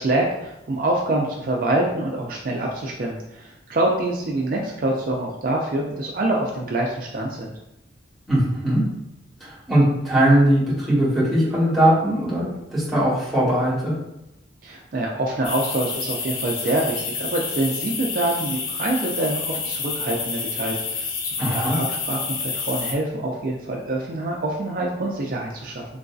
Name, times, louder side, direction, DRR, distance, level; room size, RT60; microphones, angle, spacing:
voice 1, 0.0-7.5 14.6-25.9, right 2 dB, 45° right, -1 dB, 0.4 m, -25 dB
voice 2, 8.3-8.8 9.4-13.9 21.4-21.8, right 1 dB, ahead, -10 dB, 1.1 m, -20 dB
sound 1, 15.4-22.9, left 5 dB, 90° left, 0.5 m, -29 dB
3.8 x 2.6 x 2.3 m, 0.88 s
head